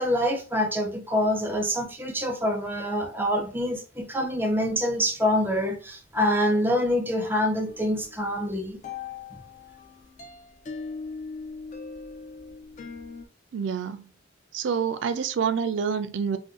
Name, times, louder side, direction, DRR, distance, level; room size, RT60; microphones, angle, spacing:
voice 1, 0.0-8.8, equal, 10° right, 0.5 m, -26 dB
sound 1, 7.7-13.3, left 4 dB, 40° left, 0.4 m, -40 dB
voice 2, 13.5-14.1 14.5-16.4, right 6 dB, 70° right, 0.4 m, -27 dB
2.5 x 2.3 x 3.7 m
head